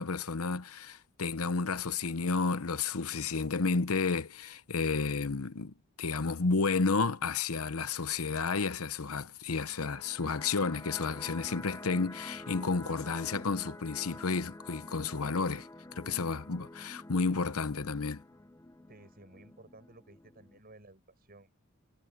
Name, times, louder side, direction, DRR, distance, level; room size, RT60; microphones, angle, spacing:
voice 1, 0.0-15.7 16.0-18.2, left 4 dB, 80° left, 0.9 m, -31 dB
sound 1, 9.6-20.6, left 2 dB, 15° left, 0.6 m, -48 dB
voice 2, 18.9-21.5, right 2 dB, 45° right, 7.0 m, -55 dB
head